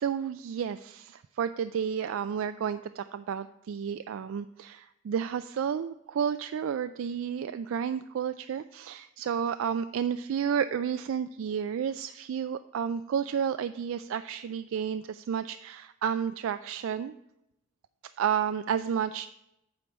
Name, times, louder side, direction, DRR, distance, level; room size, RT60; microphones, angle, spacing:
voice 1, 0.0-17.1 18.2-19.3, right 7 dB, 75° right, 11 dB, 0.3 m, -31 dB
8.7 x 4.5 x 7.2 m, 0.84 s
head